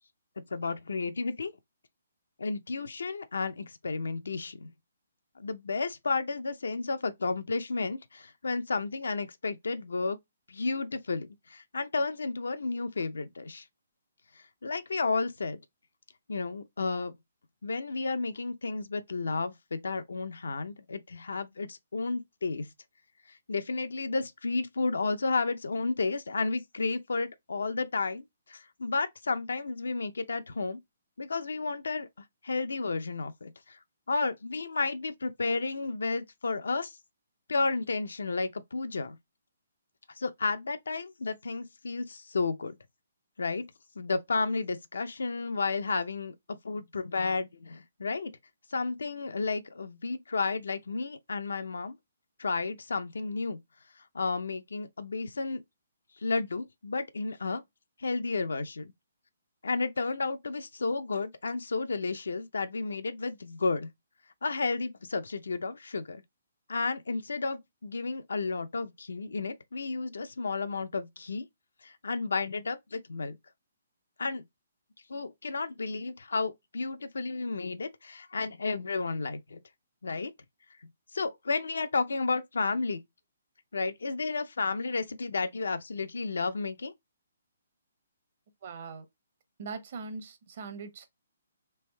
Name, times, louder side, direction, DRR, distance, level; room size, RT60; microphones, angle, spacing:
voice 1, 0.5-1.5 2.4-4.7 5.4-10.2 10.5-13.6 14.6-15.6 16.3-17.1 17.6-22.7 23.5-28.2 28.5-30.8 31.2-32.1 32.4-33.8 34.1-36.9 37.5-39.2 40.2-42.8 43.4-43.6 44.0-46.4 46.6-48.3 48.7-51.9 52.4-53.6 54.1-55.6 56.2-57.6 58.0-58.9 59.6-63.9 64.4-66.2 66.7-71.5 71.8-73.4 74.2-74.4 75.1-79.6 80.0-80.3 80.8-83.0 83.7-86.9, left 3 dB, 85° left, 0.5 m, -32 dB
voice 2, 88.6-89.0 89.6-91.1, right 4 dB, 50° right, 0.9 m, -41 dB
3.4 x 2.6 x 3.2 m
hypercardioid pair, 150°, 0 cm